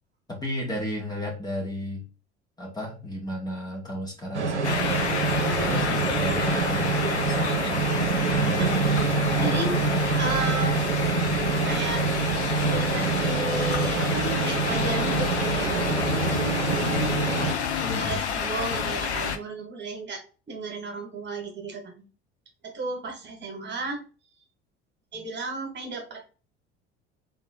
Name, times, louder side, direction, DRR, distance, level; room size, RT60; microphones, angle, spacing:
voice 1, 0.3-2.0 2.6-4.9 5.3-7.8 17.8-18.2, left 1 dB, 10° left, -2 dB, 1.9 m, -34 dB
sound 1, 4.3-17.5, right 4 dB, 85° right, 0.5 m, -26 dB
sound 2, 4.6-19.4, left 7 dB, 80° left, 0.6 m, -29 dB
voice 2, 8.6-9.7 10.2-10.8 11.6-12.0 12.6-16.5 17.8-22.0 22.6-24.0 25.1-26.2, right 3 dB, 30° right, 2 dB, 1.9 m, -34 dB
3.9 x 3.6 x 3.7 m, 0.35 s
figure-of-eight pair, 60°, 34 cm